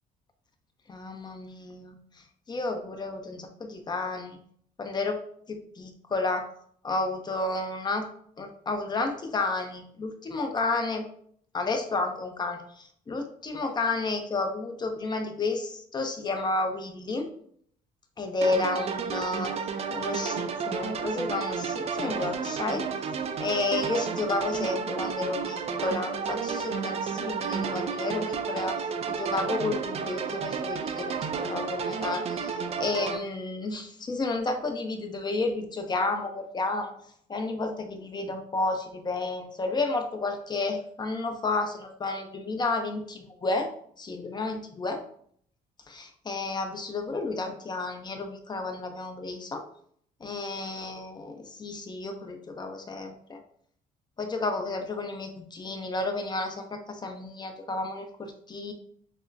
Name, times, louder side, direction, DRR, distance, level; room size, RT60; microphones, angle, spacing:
voice 1, 0.9-2.0 2.5-4.4 4.8-5.2 5.5-6.5 6.8-8.1 8.4-11.0 11.5-17.3 18.2-19.5 19.9-22.9 23.4-36.9 37.3-43.7 44.0-45.0 45.9-49.7 50.2-53.4 54.2-58.7, left 3 dB, 25° left, 5 dB, 0.6 m, -31 dB
sound 1, 18.4-33.2, right 6 dB, 40° right, 0.4 m, -31 dB
6.1 x 2.1 x 2.6 m, 0.63 s
cardioid pair, 110°, 17 cm